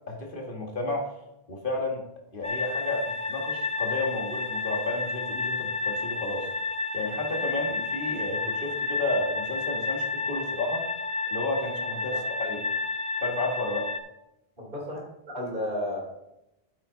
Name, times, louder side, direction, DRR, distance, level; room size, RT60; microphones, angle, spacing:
voice 1, 0.1-1.1 1.5-2.0 2.3-6.5 6.9-10.8 11.3-12.7 13.2-13.9, left 2 dB, 55° left, 0 dB, 2.1 m, -32 dB
sound 1, 2.4-14.0, left 3 dB, 10° left, 0.6 m, -31 dB
voice 2, 14.6-15.0 15.3-16.0, left 1 dB, 55° right, -3 dB, 3.7 m, -32 dB
9.0 x 7.6 x 4.0 m, 0.86 s
omnidirectional pair, 1.0 m